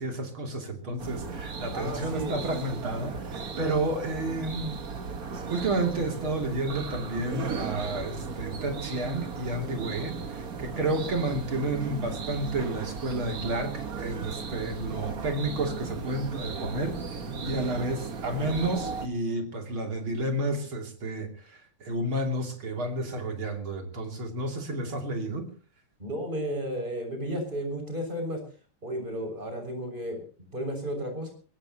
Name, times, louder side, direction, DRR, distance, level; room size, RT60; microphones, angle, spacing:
voice 1, 0.0-4.8 5.5-25.5, right 2 dB, 70° right, 4 dB, 3.7 m, -31 dB
sound 1, 1.0-19.1, right 5 dB, 45° right, 1.9 m, -36 dB
voice 2, 1.7-2.4 26.0-28.4 28.8-30.2 30.5-31.3, right 1 dB, 20° right, 4 dB, 6.7 m, -33 dB
23.0 x 20.5 x 2.9 m, 0.38 s
omnidirectional pair, 2.3 m